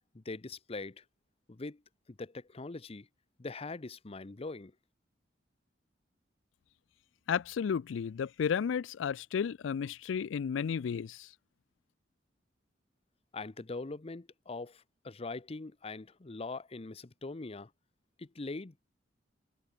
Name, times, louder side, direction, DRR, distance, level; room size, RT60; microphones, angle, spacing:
voice 1, 0.1-1.0 1.5-1.8 2.1-3.1 3.4-4.7 13.3-17.7 18.2-18.8, left 3 dB, 30° left, 0.7 m, -42 dB
voice 2, 7.3-11.3, left 7 dB, 85° left, 0.4 m, -33 dB
head